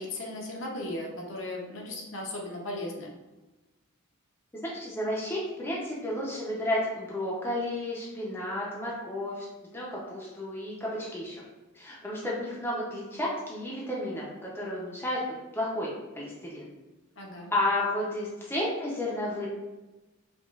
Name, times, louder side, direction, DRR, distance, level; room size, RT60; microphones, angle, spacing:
voice 1, 0.0-3.1 17.2-17.5, left 1 dB, 60° left, -1 dB, 0.7 m, -36 dB
voice 2, 4.5-9.4 9.7-11.4 11.7-15.2 15.5-15.9 16.2-16.7 17.5-19.5, left 1 dB, 10° left, -5 dB, 0.5 m, -32 dB
5.0 x 2.3 x 2.3 m, 1.1 s
head